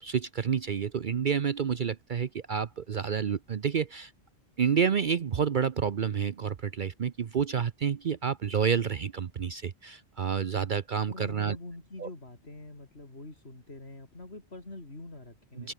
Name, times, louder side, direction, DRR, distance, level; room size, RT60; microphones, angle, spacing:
voice 1, 0.0-4.1 4.6-11.6 12.0-12.1 15.6-15.7, right 7 dB, 50° right, 0.8 m, -29 dB
voice 2, 11.0-15.7, left 2 dB, 70° left, 4.4 m, -45 dB
open air
omnidirectional pair, 1.1 m